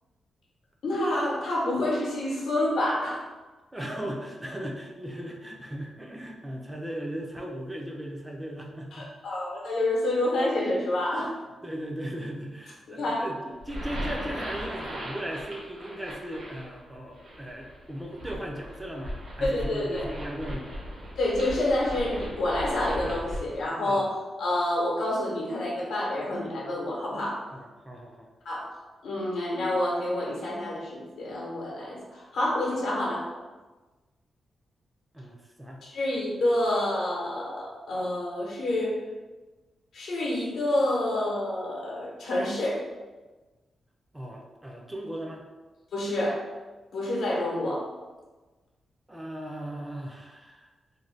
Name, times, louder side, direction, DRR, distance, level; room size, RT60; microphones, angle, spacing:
voice 1, 0.8-3.2 8.9-11.3 12.9-13.2 19.4-20.1 21.2-27.4 28.4-28.7 29.0-33.3 35.8-38.9 39.9-42.8 45.9-46.4 46.9-47.9, left 1 dB, 80° left, -4 dB, 0.8 m, -28 dB
voice 2, 3.7-9.1 11.2-11.3 11.6-20.7 23.8-24.1 27.5-28.3 35.1-35.8 44.1-45.4 49.1-50.7, right 1 dB, 10° right, 0 dB, 0.4 m, -37 dB
sound 1, 13.5-23.7, equal, 60° right, 0.7 m, -38 dB
2.5 x 2.1 x 3.1 m, 1.2 s
wide cardioid pair, 120°, 0 cm